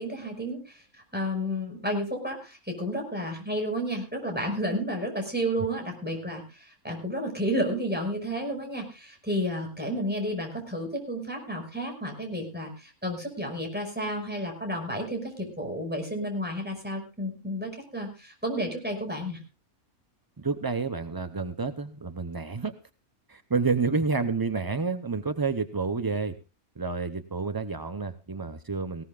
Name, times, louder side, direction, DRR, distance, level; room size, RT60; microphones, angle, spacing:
voice 1, 0.0-19.4, equal, 5° right, 2 dB, 5.4 m, -31 dB
voice 2, 20.4-22.7 23.3-26.4 26.8-29.0, right 4 dB, 30° right, 9 dB, 0.4 m, -29 dB
19.0 x 17.5 x 2.4 m, 0.30 s
omnidirectional pair, 1.5 m